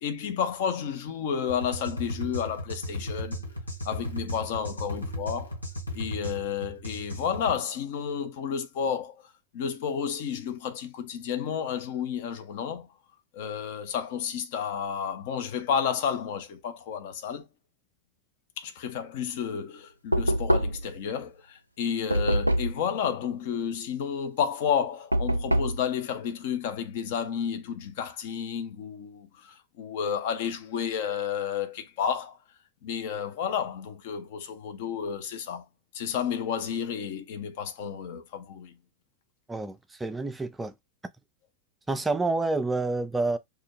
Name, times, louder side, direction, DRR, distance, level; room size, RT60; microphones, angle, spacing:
voice 1, 0.0-3.4 3.8-5.6 5.9-9.1 9.5-12.9 13.3-17.5 18.6-32.4 32.8-35.6 35.9-38.7, left 7 dB, 50° left, 0.5 m, -31 dB
sound 1, 1.5-7.6, equal, 80° left, 0.8 m, -35 dB
Knock, 20.1-21.0 22.1-22.8 25.1-25.8, right 1 dB, 90° right, 0.4 m, -25 dB
voice 2, 39.5-40.7 41.9-43.4, right 3 dB, 10° right, 0.3 m, -28 dB
2.3 x 2.0 x 3.0 m
figure-of-eight pair, 90°, 0 cm